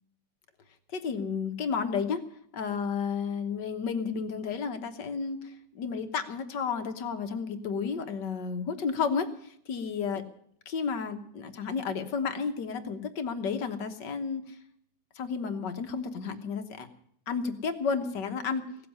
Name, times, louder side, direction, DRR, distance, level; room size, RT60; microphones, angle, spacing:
voice 1, 0.9-2.2 2.5-10.2 10.6-14.6 15.1-16.9 17.3-18.6, left 5 dB, 70° left, 7 dB, 1.8 m, -32 dB
16.5 x 7.6 x 9.9 m, 0.69 s
omnidirectional pair, 2.0 m